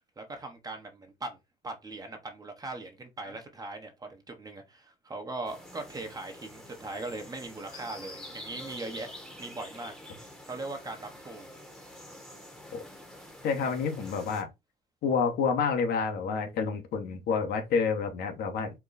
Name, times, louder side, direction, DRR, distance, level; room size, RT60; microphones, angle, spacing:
voice 1, 0.2-1.4 1.6-9.1 9.4-9.9 10.5-11.5, right 2 dB, 20° right, 1.1 m, -40 dB
sound 1, 5.5-14.4, left 1 dB, ahead, 1.2 m, -47 dB
voice 2, 13.4-14.5 15.0-18.7, left 5 dB, 70° left, 1.1 m, -28 dB
4.6 x 2.3 x 4.0 m
cardioid pair, 110°, 17 cm